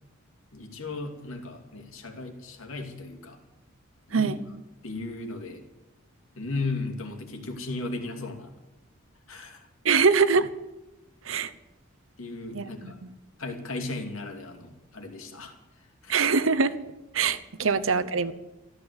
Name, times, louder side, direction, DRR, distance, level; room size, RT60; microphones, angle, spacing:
voice 1, 0.5-3.4 4.1-4.3 4.8-5.6 6.4-8.6 9.3-9.7 9.9-10.0 12.2-13.0 13.4-15.5 16.0-16.2 17.6-17.7, left 3 dB, 75° left, 4 dB, 2.6 m, -36 dB
voice 2, 4.1-4.4 9.8-10.5 11.3-11.5 12.5-13.1 16.1-16.7 17.1-18.3, right 5 dB, 70° right, 15 dB, 0.9 m, -23 dB
14.0 x 12.5 x 8.1 m, 1.0 s
head